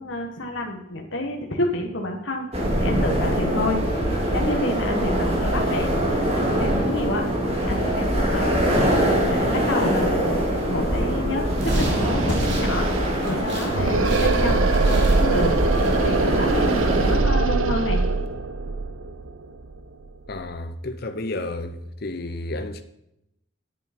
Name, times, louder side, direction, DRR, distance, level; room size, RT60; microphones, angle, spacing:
voice 1, 0.0-2.5 2.8-3.8 4.3-5.9 6.3-7.2 7.6-8.6 9.3-12.9 13.2-15.6 16.0-18.1, left 1 dB, 65° left, 1.4 m, -29 dB
sound 1, 2.5-17.2, equal, 30° right, 2.3 m, -23 dB
sound 2, 11.6-13.7 14.0-16.6, right 3 dB, 60° right, 2.6 m, -40 dB
sound 3, 11.7-20.5, right 3 dB, 90° right, 0.8 m, -23 dB
voice 2, 20.3-22.8, left 2 dB, 50° left, 0.8 m, -31 dB
10.0 x 8.4 x 4.3 m
head